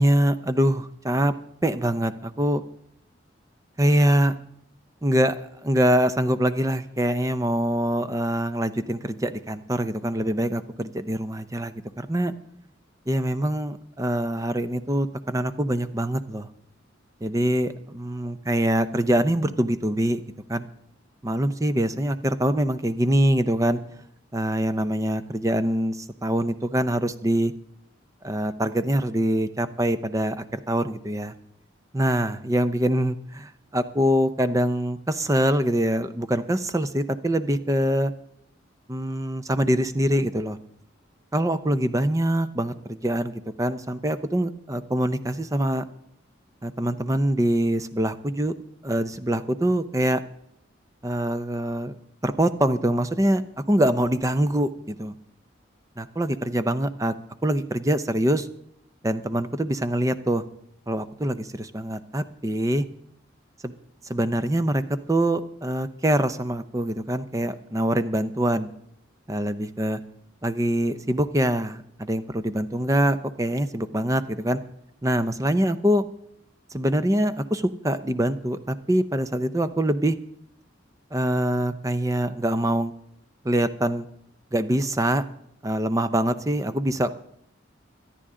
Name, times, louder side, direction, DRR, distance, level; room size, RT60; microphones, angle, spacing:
voice 1, 0.0-1.3 1.6-2.6 3.8-4.3 5.0-5.4 5.6-12.3 13.1-16.5 17.2-20.2 20.5-20.7 21.2-23.8 24.3-27.5 28.2-31.3 31.9-38.1 38.9-40.6 41.3-45.8 46.6-48.5 48.8-50.2 51.0-51.9 52.2-53.4 53.7-55.1 56.0-57.1 57.4-58.5 59.0-60.4 60.9-62.8 63.6-63.7 64.1-64.8 65.1-68.7 69.3-70.0 70.4-74.6 75.0-76.0 76.7-80.2 81.1-82.9 83.4-84.1 84.5-85.2 85.6-87.2, right 1 dB, 15° right, 12 dB, 0.5 m, -24 dB
23.5 x 9.9 x 3.7 m, 0.74 s
head